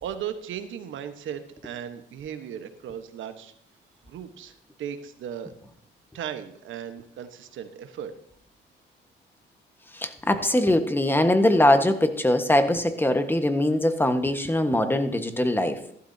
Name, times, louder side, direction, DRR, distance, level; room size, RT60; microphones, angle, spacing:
voice 1, 0.0-3.5 4.1-5.5 6.1-8.1, right 9 dB, 75° right, 9 dB, 1.3 m, -36 dB
voice 2, 9.9-15.8, left 1 dB, 10° left, 8 dB, 1.4 m, -22 dB
14.5 x 12.5 x 2.8 m, 0.70 s
cardioid pair, 90°, 20 cm